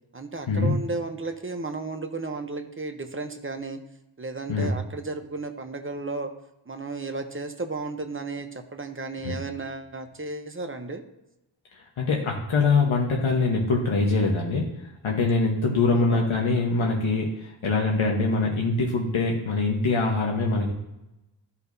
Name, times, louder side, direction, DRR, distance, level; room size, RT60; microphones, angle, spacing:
voice 1, 0.1-3.8 4.2-6.3 6.7-11.0 15.9-16.3, right 3 dB, 25° right, 6 dB, 0.7 m, -34 dB
voice 2, 11.7-14.7 15.0-20.7, left 3 dB, 75° left, -1 dB, 1.2 m, -23 dB
13.5 x 5.7 x 2.7 m, 0.95 s
wide cardioid pair, 125°, 48 cm